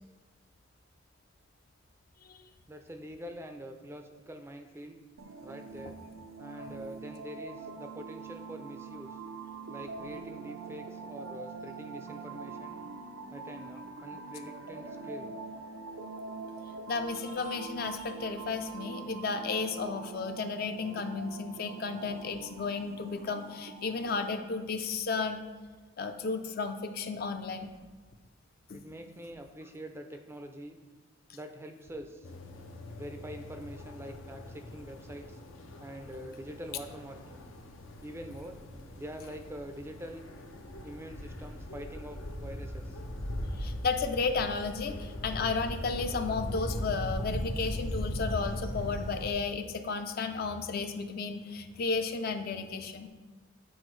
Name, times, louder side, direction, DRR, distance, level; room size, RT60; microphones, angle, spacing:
voice 1, 2.7-5.0 5.4-6.0 6.4-9.2 9.7-12.8 13.3-15.3 28.7-30.8 31.3-32.3 33.0-35.4 35.8-37.5 38.0-38.6 39.0-40.2 40.8-43.0, equal, 10° right, 5 dB, 0.4 m, -45 dB
sound 1, 5.2-24.4, right 4 dB, 85° right, 0.5 m, -44 dB
voice 2, 16.9-25.4 26.0-27.8 28.7-28.8 43.6-53.1, left 4 dB, 50° left, 7 dB, 0.4 m, -33 dB
sound 2, 32.2-49.3, left 1 dB, 80° left, 0.7 m, -39 dB
7.8 x 4.4 x 3.2 m, 1.3 s
head